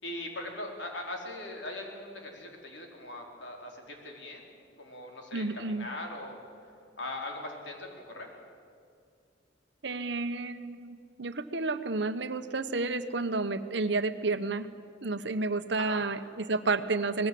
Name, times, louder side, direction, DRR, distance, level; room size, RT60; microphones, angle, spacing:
voice 1, 0.0-6.4 7.0-8.3 15.8-16.0, left 1 dB, 70° left, 1 dB, 4.1 m, -40 dB
voice 2, 5.3-5.9 9.8-14.7 15.0-17.3, right 3 dB, 65° right, 10 dB, 1.0 m, -31 dB
25.5 x 19.5 x 7.7 m, 2.3 s
head